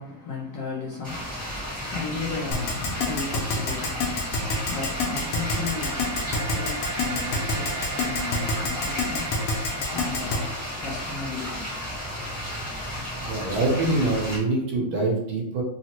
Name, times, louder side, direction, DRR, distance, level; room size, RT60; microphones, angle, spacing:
voice 1, 0.0-9.4 9.9-11.7, left 4 dB, 70° left, -3 dB, 1.1 m, -35 dB
sound 1, 1.0-14.4, equal, 5° left, 0.9 m, -33 dB
Keyboard (musical), 2.5-10.4, left 3 dB, 90° left, 1.6 m, -26 dB
sound 2, 3.7-11.3, right 3 dB, 35° right, 1.0 m, -37 dB
voice 2, 13.3-15.6, right 2 dB, 70° right, -1 dB, 1.5 m, -24 dB
4.0 x 2.0 x 2.8 m, 0.78 s
omnidirectional pair, 2.4 m